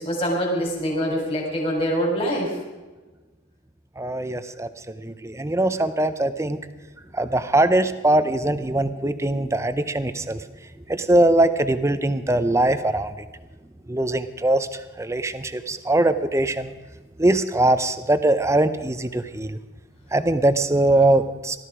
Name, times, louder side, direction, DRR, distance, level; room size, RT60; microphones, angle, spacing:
voice 1, 0.0-2.5, equal, 30° left, -2 dB, 3.8 m, -24 dB
voice 2, 4.0-4.7 5.0-6.6 7.1-10.4 10.9-13.1 13.9-16.7 17.2-19.6 20.1-21.6, right 1 dB, 15° right, 11 dB, 0.6 m, -21 dB
18.0 x 13.0 x 5.0 m, 1.2 s
head